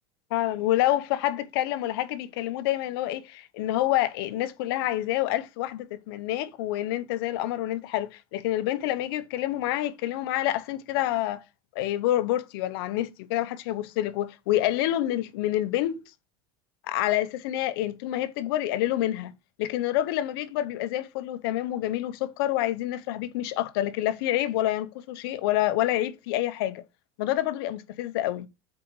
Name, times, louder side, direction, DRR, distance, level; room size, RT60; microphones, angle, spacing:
voice 1, 0.3-11.4 11.7-16.0 16.9-19.3 19.6-26.8 27.2-28.5, left 14 dB, 80° left, 0.9 m, -27 dB
7.6 x 4.9 x 4.8 m
supercardioid pair, 120°, 12 cm